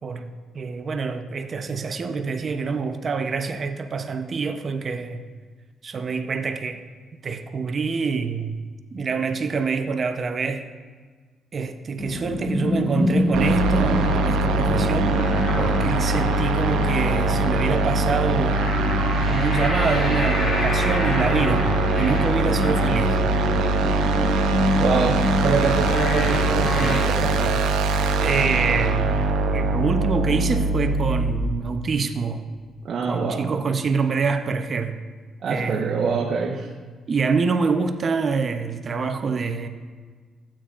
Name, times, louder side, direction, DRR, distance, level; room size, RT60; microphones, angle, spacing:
voice 1, 0.5-5.2 5.8-6.8 7.2-8.6 8.9-10.6 11.5-15.2 15.6-18.9 19.3-21.7 22.0-23.2 28.2-29.2 29.5-32.4 33.1-35.0 35.5-36.2 37.1-39.7, right 5 dB, 45° right, 0.7 m, -26 dB
sound 1, 12.0-27.0, left 1 dB, 55° left, 1.7 m, -26 dB
sound 2, 13.3-31.3, right 2 dB, 90° right, 0.7 m, -22 dB
voice 2, 24.8-27.6 32.8-33.5 35.4-36.7, right 4 dB, 60° right, 1.1 m, -25 dB
15.0 x 8.7 x 2.5 m
cardioid pair, 90°, 0 cm